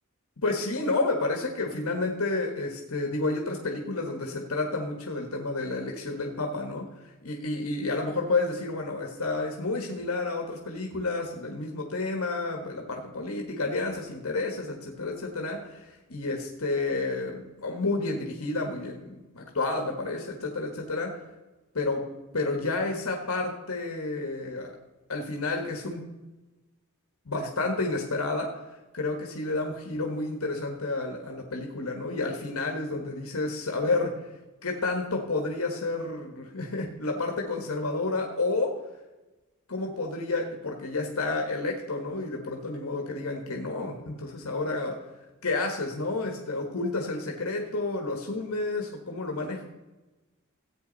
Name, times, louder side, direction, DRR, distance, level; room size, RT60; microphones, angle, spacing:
voice 1, 0.4-21.2 21.7-22.1 22.3-24.8 25.1-26.0 27.2-28.5 28.9-34.1 34.6-38.8 39.7-45.0 45.4-49.6, left 3 dB, 70° left, 2 dB, 1.4 m, -30 dB
14.0 x 8.7 x 4.0 m, 1.1 s
head